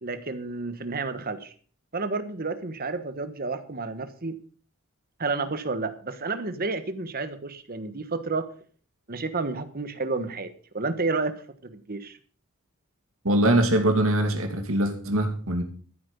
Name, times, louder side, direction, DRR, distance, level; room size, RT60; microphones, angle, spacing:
voice 1, 0.0-1.5 1.9-4.3 5.2-8.5 9.1-10.5 10.7-11.3 11.6-12.2, right 3 dB, 45° right, 10 dB, 1.3 m, -30 dB
voice 2, 13.2-15.6, right 1 dB, 75° right, 5 dB, 2.4 m, -22 dB
14.0 x 8.7 x 5.4 m, 0.44 s
head